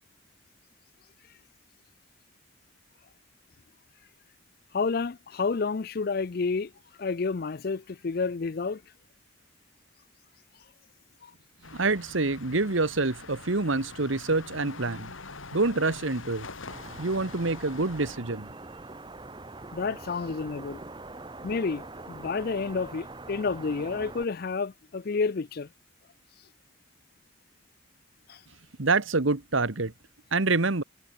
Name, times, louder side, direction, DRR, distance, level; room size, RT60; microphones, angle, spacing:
voice 1, 4.7-6.7 7.0-8.8 11.2-11.3 19.7-20.8 21.4-25.7 28.3-28.4, left 4 dB, 50° left, 0.5 m, -30 dB
sound 1, 11.6-18.2, left 3 dB, 75° left, 3.0 m, -44 dB
voice 2, 11.7-15.1 15.5-16.5 17.0-18.5 28.8-29.9 30.3-30.8, right 3 dB, 70° right, 1.4 m, -26 dB
sound 2, 16.7-24.2, right 2 dB, 20° right, 1.2 m, -43 dB
head